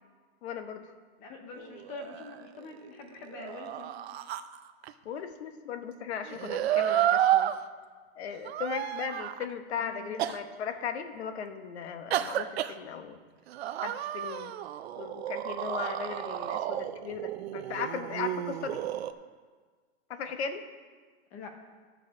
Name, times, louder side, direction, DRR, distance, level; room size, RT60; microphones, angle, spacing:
voice 1, 0.4-0.8 5.0-7.5 8.2-13.2 13.8-14.5 15.0-18.8 20.1-20.7, left 7 dB, 90° left, 8 dB, 1.1 m, -37 dB
voice 2, 1.2-4.3 9.8-10.1 21.3-21.5, left 3 dB, 25° left, 4 dB, 0.8 m, -45 dB
sound 1, 1.6-2.8 3.3-4.9 6.3-7.6 8.5-9.5 10.2-10.4 12.1-12.7 13.5-19.1, right 12 dB, 75° right, 0.6 m, -31 dB
12.0 x 6.6 x 4.8 m, 1.5 s
supercardioid pair, 175°, 32 cm